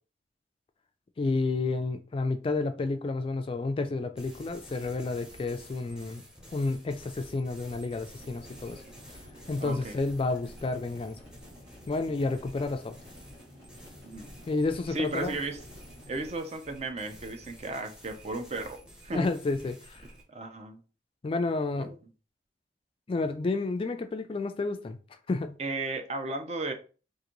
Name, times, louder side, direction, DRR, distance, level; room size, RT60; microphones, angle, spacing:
voice 1, 1.2-6.2 6.5-8.8 9.5-11.2 11.9-13.0 14.5-15.4 19.1-20.0 21.2-22.0 23.1-25.0 25.3-25.6, left 3 dB, 30° left, 0.3 m, -30 dB
sound 1, 4.2-20.2, equal, 5° right, 0.7 m, -51 dB
sound 2, 8.2-16.3, equal, 70° right, 1.8 m, -52 dB
voice 2, 9.6-10.0 14.0-14.3 14.9-15.6 16.1-18.8 19.0-19.2 20.3-20.8 21.8-21.9 25.6-26.7, right 2 dB, 40° right, 0.5 m, -34 dB
3.8 x 2.5 x 3.0 m
head